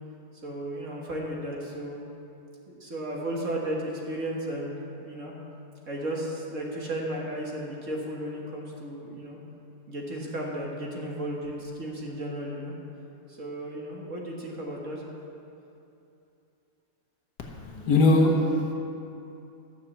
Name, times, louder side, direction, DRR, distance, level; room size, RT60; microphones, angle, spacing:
voice 1, 0.4-2.0 2.7-5.3 5.9-9.4 9.9-12.7 13.3-15.0, right 1 dB, 45° right, -2 dB, 1.8 m, -34 dB
voice 2, 17.4-18.7, left 2 dB, 60° left, 1 dB, 1.6 m, -22 dB
13.0 x 6.6 x 7.2 m, 2.8 s
omnidirectional pair, 2.0 m